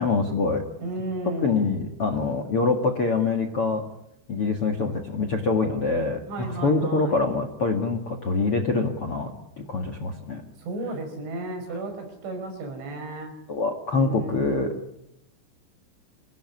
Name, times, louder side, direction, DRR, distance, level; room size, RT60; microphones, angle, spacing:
voice 1, 0.0-0.6 1.4-3.8 4.3-10.4 13.5-14.7, left 3 dB, 45° left, 7 dB, 1.9 m, -25 dB
voice 2, 0.8-1.8 6.2-7.2 10.6-13.3 13.9-14.7, right 2 dB, 75° right, 4 dB, 8.0 m, -33 dB
26.5 x 18.0 x 9.7 m, 0.82 s
omnidirectional pair, 5.5 m